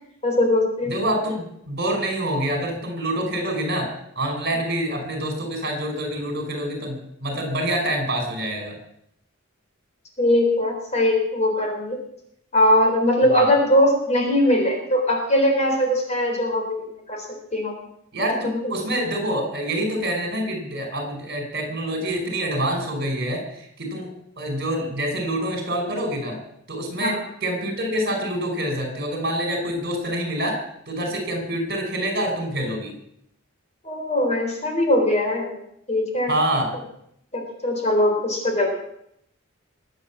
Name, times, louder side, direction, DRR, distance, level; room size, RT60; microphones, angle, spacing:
voice 1, 0.2-0.9 10.2-12.0 12.5-17.3 17.5-17.8 27.0-27.2 33.8-35.6 35.9-36.3 37.3-38.7, left 1 dB, 30° left, 2 dB, 3.9 m, -21 dB
voice 2, 0.9-3.9 4.2-8.8 13.3-13.5 18.1-24.1 24.4-26.4 26.7-30.6 30.9-32.9 36.3-36.7, right 1 dB, 50° right, 4 dB, 5.3 m, -26 dB
22.0 x 8.2 x 7.4 m, 0.75 s
head